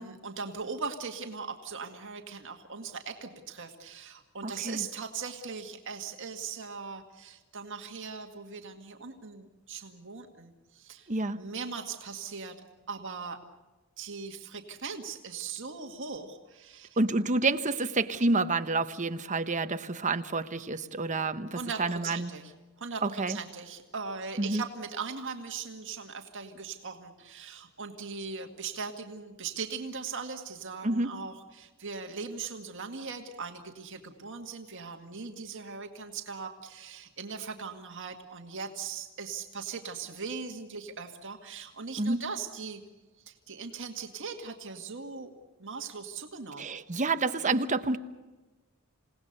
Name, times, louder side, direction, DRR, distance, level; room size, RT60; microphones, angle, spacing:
voice 1, 0.0-11.1 11.3-12.6 12.9-13.4 14.0-17.0 21.5-42.8 43.3-45.3 45.6-46.7, right 5 dB, 60° right, 4 dB, 2.0 m, -39 dB
voice 2, 4.4-4.9 11.1-11.4 17.0-22.3 23.0-23.4 24.4-24.6 30.8-31.1 42.0-42.2 46.6-48.0, right 3 dB, 35° right, 9 dB, 1.0 m, -29 dB
28.5 x 18.0 x 6.7 m, 1.2 s
head